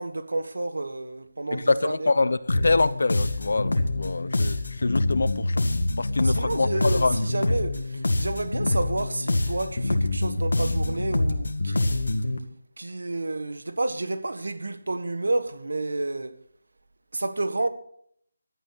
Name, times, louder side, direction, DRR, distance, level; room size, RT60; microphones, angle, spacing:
voice 1, 0.0-2.2 6.2-12.0 12.8-16.3 17.1-17.7, right 2 dB, 85° right, 1.6 m, -30 dB
voice 2, 1.5-5.6 6.0-7.2, left 3 dB, 65° left, 0.8 m, -25 dB
sound 1, 2.5-12.4, left 2 dB, 90° left, 2.0 m, -26 dB
15.5 x 12.5 x 4.2 m
figure-of-eight pair, 175°, 0 cm